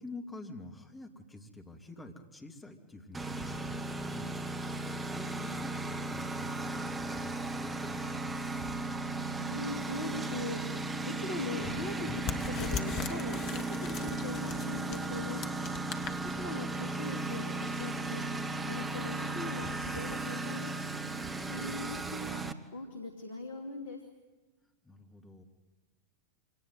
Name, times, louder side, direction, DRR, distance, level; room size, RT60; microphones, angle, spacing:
voice 1, 0.0-4.3 5.1-8.8 24.8-25.4, left 2 dB, 10° left, 3 dB, 2.8 m, -48 dB
Engine, 3.1-22.5, right 2 dB, 15° right, 1.3 m, -36 dB
voice 2, 9.3-15.4 16.2-20.7 21.4-24.0, left 2 dB, 60° left, 4 dB, 2.5 m, -41 dB
sound 1, 11.6-16.8, left 6 dB, 35° left, 1.4 m, -40 dB
25.5 x 18.5 x 9.5 m, 1.2 s
figure-of-eight pair, 90°, 0 cm